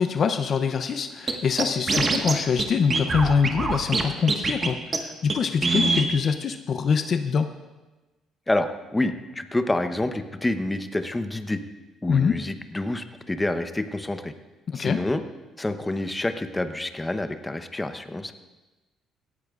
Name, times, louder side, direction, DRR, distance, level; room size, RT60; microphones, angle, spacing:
voice 1, 0.0-7.5 12.1-12.4 14.7-15.0, left 6 dB, 50° left, 9 dB, 0.6 m, -24 dB
Scratching (performance technique), 1.3-1.4 1.6-2.3 2.6-2.7 2.9-4.0 4.3-4.7 4.9-5.0 5.3-5.4 5.6-6.1, right 3 dB, 35° right, 1.4 m, -23 dB
voice 2, 8.5-11.6 12.0-14.3 14.7-15.2 15.6-18.3, left 2 dB, 15° left, 9 dB, 0.9 m, -28 dB
17.5 x 13.5 x 2.5 m, 1.1 s
supercardioid pair, 80°, 0 cm